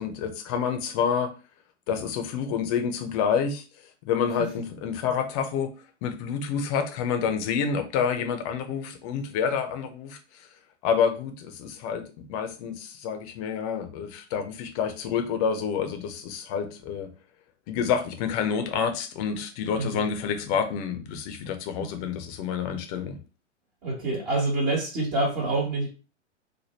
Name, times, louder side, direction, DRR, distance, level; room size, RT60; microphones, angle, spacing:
voice 1, 0.0-1.3 1.9-3.6 4.1-5.7 6.0-10.2 10.8-12.0 12.3-17.1 17.7-23.2, left 7 dB, 30° left, 6 dB, 0.7 m, -28 dB
voice 2, 23.8-25.9, right 2 dB, 40° right, -2 dB, 1.5 m, -26 dB
3.4 x 2.2 x 4.2 m, 0.33 s
figure-of-eight pair, 105°, 36 cm